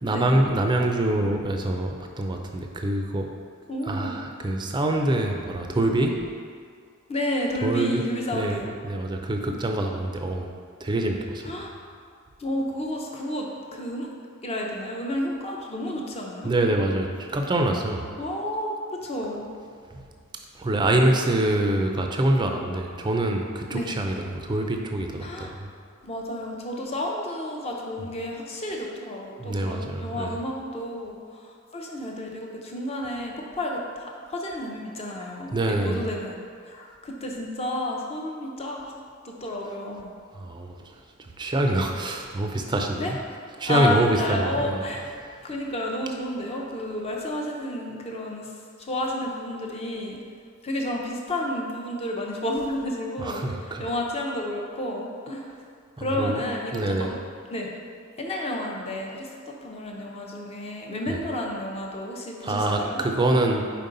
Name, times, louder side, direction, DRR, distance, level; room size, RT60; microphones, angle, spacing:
voice 1, 0.0-3.3 3.9-6.1 7.6-8.0 8.3-10.5 10.8-11.6 16.4-18.1 20.6-25.7 29.4-30.3 35.5-36.0 40.3-40.7 41.2-43.2 43.6-44.8 53.2-53.9 56.0-56.4 56.7-57.1 61.1-61.2 62.4-63.7, right 1 dB, 20° right, 3 dB, 0.4 m, -25 dB
voice 2, 3.7-4.2 7.1-8.7 11.4-11.7 12.4-14.1 14.4-16.5 18.2-19.5 23.7-23.9 25.2-25.5 26.0-38.9 39.2-40.1 43.0-43.1 43.5-45.0 45.4-48.5 48.8-50.2 50.6-55.4 56.0-57.2 57.5-57.7 58.2-63.0, left 1 dB, 30° left, 0 dB, 0.7 m, -31 dB
5.3 x 4.5 x 3.9 m, 2.1 s
head